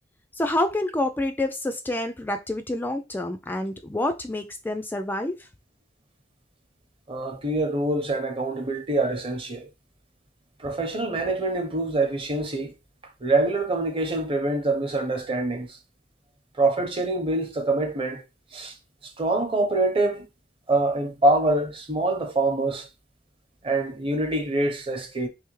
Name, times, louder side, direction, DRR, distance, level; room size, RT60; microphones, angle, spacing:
voice 1, 0.4-5.5, left 1 dB, 10° left, 0.3 m, -28 dB
voice 2, 7.1-9.7 10.6-12.7 13.2-15.8 16.6-18.2 18.5-18.7 19.0-20.3 20.7-22.9 23.6-25.3, right 2 dB, 30° right, 0.8 m, -25 dB
3.4 x 3.1 x 3.1 m
head